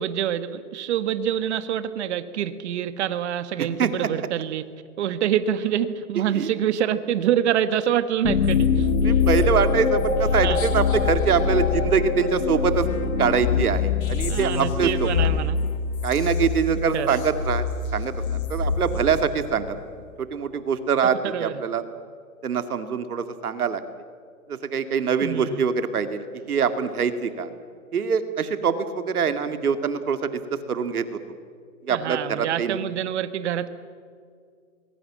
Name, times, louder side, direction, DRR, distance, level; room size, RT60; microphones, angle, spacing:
voice 1, 0.0-4.6 5.0-8.9 10.4-10.6 14.3-15.6 16.9-17.2 21.0-21.6 25.2-25.6 31.9-33.7, right 10 dB, 50° right, 13 dB, 1.6 m, -26 dB
sound 1, 8.2-19.8, left 5 dB, 65° left, 3.4 m, -24 dB
voice 2, 9.0-12.9 13.2-15.3 16.0-17.6 17.9-18.1 18.5-19.8 20.2-21.8 22.4-23.8 24.5-27.5 27.9-30.4 30.7-31.2 31.8-32.8, right 6 dB, 75° right, 10 dB, 2.5 m, -24 dB
24.0 x 21.5 x 7.6 m, 2.1 s
hypercardioid pair, 145°, 44 cm